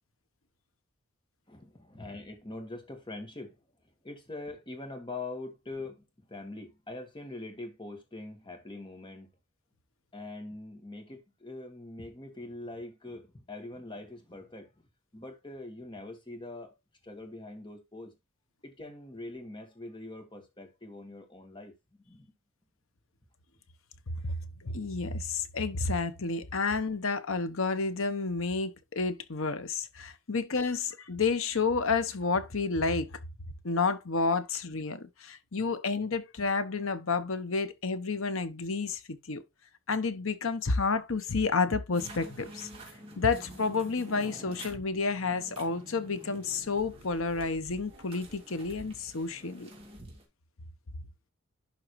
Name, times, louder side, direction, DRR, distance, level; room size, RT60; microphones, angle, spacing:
voice 1, 1.5-3.6 4.0-9.3 10.1-14.9 15.1-16.8 17.0-18.1 18.6-21.7 22.1-22.3, left 2 dB, 20° left, 1.6 m, -43 dB
voice 2, 24.2-33.1 33.6-39.4 39.9-42.7 43.2-49.7, left 4 dB, 70° left, 1.0 m, -30 dB
sound 1, 41.9-50.2, right 1 dB, 25° right, 2.4 m, -48 dB
11.5 x 3.8 x 3.1 m
head